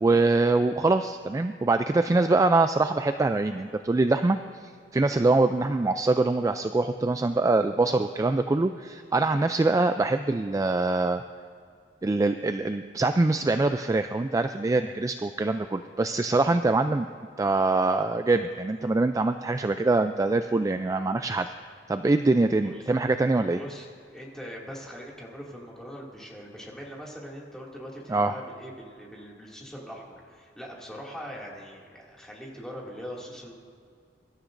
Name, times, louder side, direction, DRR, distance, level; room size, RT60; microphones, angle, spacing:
voice 1, 0.0-4.4 4.9-11.2 12.0-17.1 17.4-21.5 21.9-23.6 28.1-28.3, right 3 dB, 20° right, 8 dB, 0.3 m, -24 dB
voice 2, 24.1-33.5, equal, 5° left, -4 dB, 2.3 m, -41 dB
23.5 x 13.0 x 2.6 m, 2.3 s
head